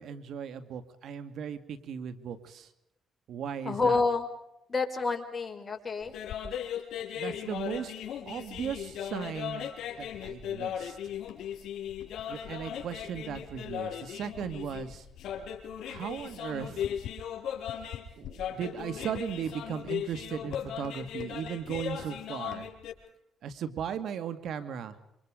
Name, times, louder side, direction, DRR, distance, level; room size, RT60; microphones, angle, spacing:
voice 1, 0.0-2.7 3.3-4.0 7.1-7.9 8.3-9.7 10.0-11.0 12.2-15.1 15.8-16.9 18.2-22.7 23.4-25.0, right 8 dB, 70° right, 11 dB, 2.1 m, -37 dB
voice 2, 3.6-4.3 4.7-6.1, left 4 dB, 30° left, 5 dB, 4.8 m, -28 dB
sound 1, 6.0-22.9, left 9 dB, 80° left, 4.9 m, -37 dB
27.5 x 26.0 x 5.1 m, 0.82 s
cardioid pair, 90°, 0 cm